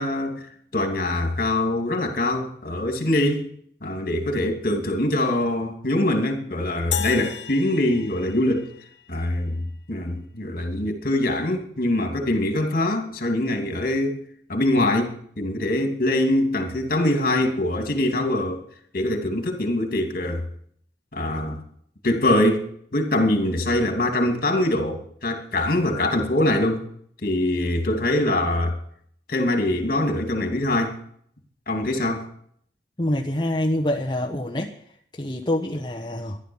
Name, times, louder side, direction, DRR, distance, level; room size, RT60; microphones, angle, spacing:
voice 1, 0.0-3.5 3.8-8.7 9.1-14.2 14.5-18.6 18.9-20.5 21.1-21.6 22.0-26.8 27.2-28.8 29.3-30.9 31.7-32.2, left 1 dB, 50° left, 5 dB, 2.8 m, -23 dB
sound 1, 6.9-9.3, left 10 dB, 80° left, 0.9 m, -33 dB
voice 2, 33.0-34.7 35.2-36.4, left 1 dB, 25° left, 0 dB, 1.2 m, -25 dB
14.5 x 11.5 x 7.2 m, 0.64 s
head